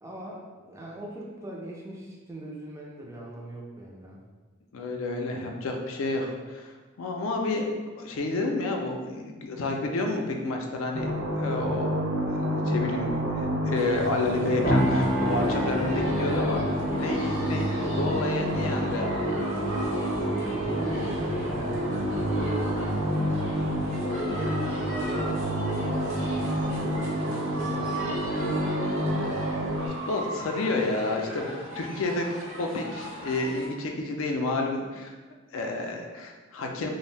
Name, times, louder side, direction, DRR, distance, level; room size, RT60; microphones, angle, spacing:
voice 1, 0.0-4.2 20.4-23.4 23.8-28.1, right 1 dB, 15° right, -2 dB, 0.3 m, -40 dB
voice 2, 4.7-11.9 12.3-19.3 28.9-29.3 30.1-35.1 35.5-36.9, left 2 dB, 80° left, 2 dB, 0.4 m, -30 dB
sound 1, 10.9-29.9, equal, 85° right, 0.4 m, -29 dB
sound 2, 13.7-33.7, right 1 dB, 70° right, 0.8 m, -40 dB
sound 3, 14.6-24.4, equal, 50° left, 0.7 m, -32 dB
2.6 x 2.1 x 3.2 m, 1.3 s
head